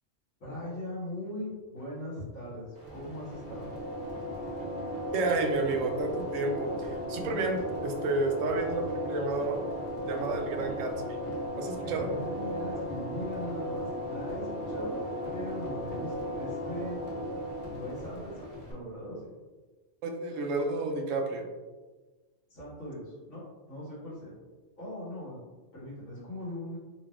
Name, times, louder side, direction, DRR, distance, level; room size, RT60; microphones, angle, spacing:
voice 1, 0.4-3.7 11.8-15.0 15.3-17.0 17.7-19.2 22.5-24.4 24.8-25.4 25.7-26.8, left 1 dB, 70° left, -10 dB, 2.0 m, -40 dB
sound 1, 2.7-18.7, equal, 40° right, 1.2 m, -36 dB
voice 2, 5.1-9.6 10.0-11.2 11.6-12.1 20.0-21.5, right 3 dB, 90° right, 4 dB, 1.0 m, -31 dB
3.9 x 3.3 x 2.4 m, 1.3 s
omnidirectional pair, 1.3 m